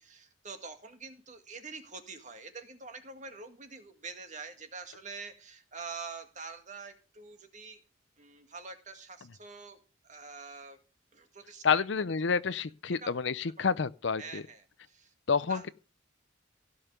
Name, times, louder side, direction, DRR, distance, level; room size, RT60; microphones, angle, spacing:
voice 1, 0.0-7.8 8.2-9.8 10.0-10.8 11.1-11.9 13.0-13.1 14.2-15.1 15.5-15.7, right 4 dB, 40° right, 2.0 m, -45 dB
voice 2, 11.6-14.4 15.3-15.7, left 5 dB, 70° left, 0.6 m, -29 dB
16.5 x 5.7 x 6.7 m
head